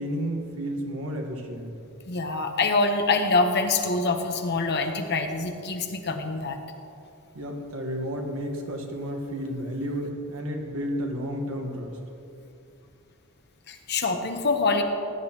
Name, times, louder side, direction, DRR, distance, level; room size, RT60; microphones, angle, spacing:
voice 1, 0.0-1.7 7.3-12.0, equal, 70° right, 2 dB, 1.4 m, -32 dB
voice 2, 2.1-6.6 13.7-14.8, left 3 dB, 50° left, 5 dB, 0.9 m, -25 dB
16.0 x 10.0 x 3.0 m, 2.6 s
head